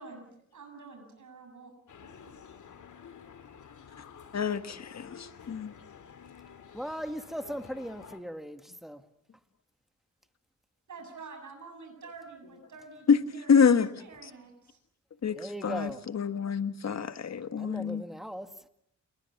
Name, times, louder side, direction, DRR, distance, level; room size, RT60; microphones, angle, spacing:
voice 1, 0.0-1.7 2.0-2.3 10.9-13.7 14.0-14.8, right 4 dB, 75° right, 3 dB, 7.3 m, -48 dB
sound 1, 1.9-8.2, left 7 dB, 80° left, 2.6 m, -51 dB
voice 2, 4.3-5.7 13.1-13.2 13.5-13.9 14.2-14.3 15.2-18.0, left 6 dB, 60° left, 10 dB, 1.6 m, -26 dB
voice 3, 6.7-9.0 15.4-16.0 17.6-18.7, equal, ahead, 8 dB, 2.0 m, -38 dB
29.0 x 21.5 x 7.2 m, 0.73 s
cardioid pair, 90°, 30 cm